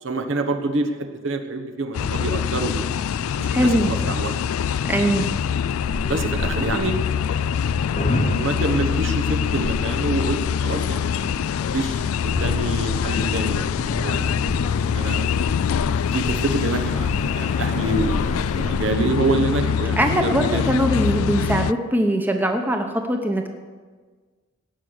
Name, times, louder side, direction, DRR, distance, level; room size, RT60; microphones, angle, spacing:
voice 1, 0.0-2.9 3.4-4.4 5.0-5.2 6.1-7.0 7.9-14.4 14.9-15.3 15.9-17.1 17.3-20.7, right 2 dB, 65° right, 6 dB, 1.1 m, -27 dB
sound 1, 1.9-21.7, left 7 dB, 85° left, 0.3 m, -24 dB
voice 2, 3.5-3.9 4.9-5.4 20.0-23.5, right 1 dB, 10° right, 4 dB, 0.9 m, -21 dB
sound 2, 5.8-18.9, left 1 dB, 35° left, 0.8 m, -31 dB
18.5 x 6.3 x 7.9 m, 1.4 s
head